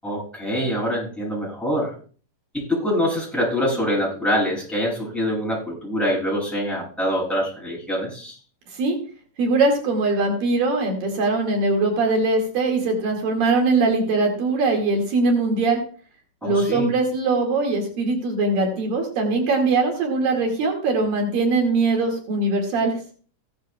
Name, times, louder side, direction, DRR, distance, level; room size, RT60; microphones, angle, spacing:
voice 1, 0.0-1.9 2.5-8.4 16.4-16.9, equal, ahead, -4 dB, 7.3 m, -25 dB
voice 2, 9.4-15.8 16.4-22.9, right 3 dB, 80° right, 1 dB, 4.0 m, -21 dB
16.0 x 12.0 x 2.4 m, 0.41 s
omnidirectional pair, 3.9 m